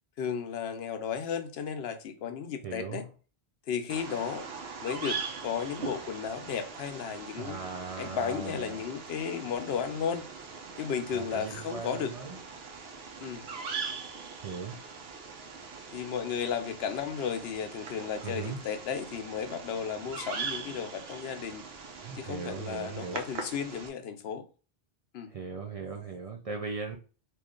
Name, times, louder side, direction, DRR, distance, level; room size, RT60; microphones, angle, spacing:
voice 1, 0.2-3.0 3.7-4.5 4.8-7.6 8.0-10.3 10.8-12.1 13.2-13.4 15.9-21.6 22.1-24.4 25.1-25.3, left 7 dB, 75° left, 0.8 m, -34 dB
voice 2, 2.6-3.0 7.4-8.8 11.1-12.4 14.4-14.8 18.2-18.6 22.0-23.2 25.3-27.0, right 5 dB, 50° right, 0.5 m, -38 dB
Bird vocalization bird call bird song, 3.9-23.9, right 5 dB, 75° right, 0.9 m, -41 dB
3.0 x 2.4 x 3.6 m
omnidirectional pair, 1.0 m